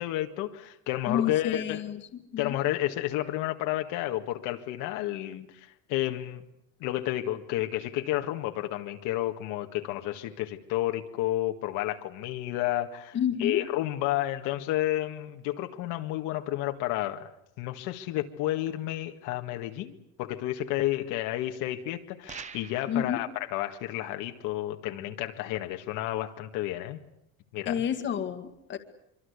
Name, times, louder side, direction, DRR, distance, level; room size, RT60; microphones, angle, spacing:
voice 1, 0.0-1.8 2.4-6.4 6.8-17.3 17.6-27.0 27.5-27.8, left 14 dB, 65° left, 1.8 m, -31 dB
voice 2, 1.1-2.0 2.3-2.6 13.1-13.7 22.9-23.2 27.7-28.8, left 9 dB, 35° left, 2.0 m, -29 dB
sound 1, 22.3-23.0, right 6 dB, 20° right, 1.1 m, -43 dB
25.0 x 25.0 x 8.3 m
cardioid pair, 165°, 33 cm